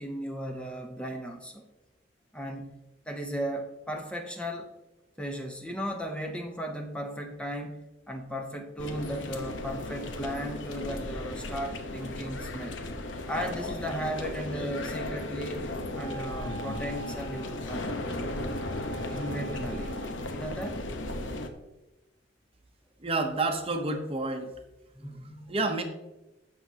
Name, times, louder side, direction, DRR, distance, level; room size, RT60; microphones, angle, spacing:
voice 1, 0.0-1.6 2.3-2.8 3.1-4.7 5.2-12.8 13.3-15.7 15.9-18.3 19.1-19.9 20.3-20.8 24.9-25.5, equal, 5° left, 3 dB, 0.8 m, -36 dB
sound 1, 8.8-21.5, left 2 dB, 80° left, 1.0 m, -36 dB
Wind instrument woodwind instrument, 15.9-20.5, right 4 dB, 85° right, 1.1 m, -45 dB
voice 2, 23.0-24.5 25.5-25.8, right 2 dB, 30° right, 5 dB, 0.9 m, -29 dB
15.0 x 6.0 x 2.8 m, 1.0 s
head